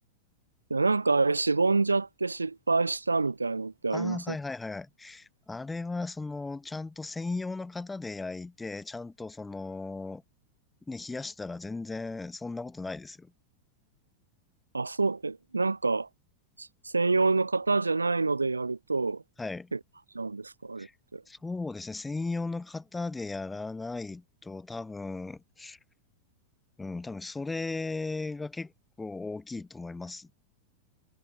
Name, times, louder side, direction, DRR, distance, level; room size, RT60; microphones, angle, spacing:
voice 1, 0.7-4.4 14.7-16.1 16.6-19.2 19.7-19.8 20.1-21.2, right 3 dB, 80° right, 0.5 m, -27 dB
voice 2, 3.9-10.2 10.9-13.3 19.4-19.7 20.8-20.9 21.3-25.8 26.8-28.7 29.0-30.3, left 3 dB, 10° left, 0.6 m, -36 dB
figure-of-eight pair, 90°, 0 cm